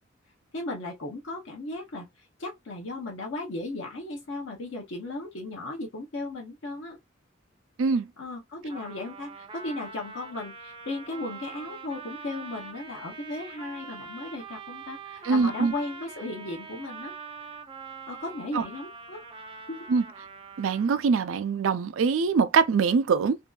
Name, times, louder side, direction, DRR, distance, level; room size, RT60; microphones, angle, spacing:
voice 1, 0.5-7.0 8.2-17.1 18.1-19.2 19.7-19.9, left 2 dB, 65° left, 0.6 m, -36 dB
Trumpet, 8.7-21.1, right 5 dB, 25° right, 0.4 m, -43 dB
voice 2, 15.2-15.7 18.5-18.6 19.9-20.0 20.6-23.4, right 5 dB, 90° right, 0.4 m, -23 dB
2.6 x 2.3 x 2.2 m
head